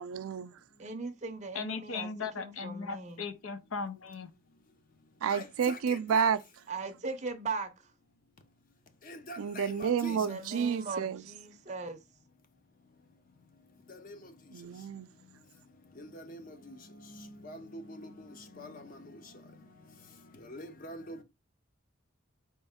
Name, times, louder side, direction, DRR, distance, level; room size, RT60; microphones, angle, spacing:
voice 1, 0.0-0.6 5.2-6.4 9.4-11.3 14.5-15.1, right 7 dB, 85° right, 0.4 m, -30 dB
voice 2, 0.8-3.3 6.7-7.9 10.1-12.0, right 4 dB, 35° right, 0.6 m, -39 dB
voice 3, 1.5-4.3, left 5 dB, 80° left, 0.7 m, -37 dB
voice 4, 5.3-6.3 9.1-10.2 14.0-14.2 16.0-16.4 16.7-16.8 17.2-18.1 18.6-18.9 20.5-21.2, left 1 dB, 40° left, 0.7 m, -44 dB
4.3 x 3.1 x 3.5 m
head